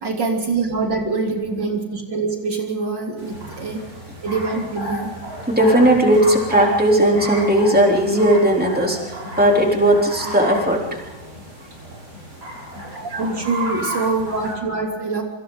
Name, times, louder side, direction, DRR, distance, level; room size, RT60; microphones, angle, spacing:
voice 1, 0.0-3.8 4.2-5.2 12.9-15.2, right 3 dB, 85° right, 1 dB, 3.8 m, -24 dB
sound 1, 3.2-14.5, equal, 65° right, 8.1 m, -32 dB
voice 2, 5.5-10.8, right 1 dB, 5° right, 0 dB, 3.3 m, -16 dB
28.0 x 25.0 x 3.9 m, 1.1 s
omnidirectional pair, 1.9 m